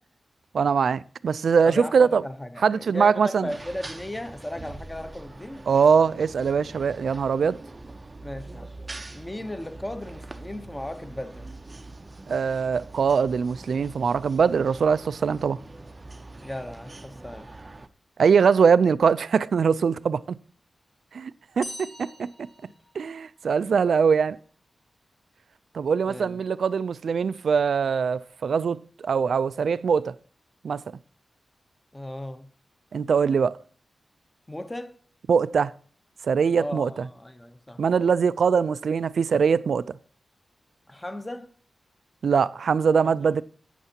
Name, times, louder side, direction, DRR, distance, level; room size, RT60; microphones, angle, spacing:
voice 1, 0.5-2.2 2.6-3.5 5.7-7.6 12.3-15.6 18.2-20.4 21.1-22.3 23.0-24.4 25.7-30.1 30.6-30.8 32.9-33.6 35.3-35.7 36.2-37.1 37.8-39.9 42.2-43.4, right 6 dB, 75° right, 0.3 m, -22 dB
voice 2, 1.6-5.6 8.2-8.7 9.1-11.5 16.4-17.5 26.0-26.4 31.9-32.5 34.5-35.0 36.5-37.8 40.9-41.5 43.0-43.4, left 1 dB, 10° left, 0.8 m, -36 dB
sound 1, 3.5-17.9, right 2 dB, 25° right, 0.6 m, -43 dB
sound 2, 21.6-23.5, left 1 dB, 35° left, 5.3 m, -43 dB
12.0 x 9.0 x 2.8 m
wide cardioid pair, 155°, 0 cm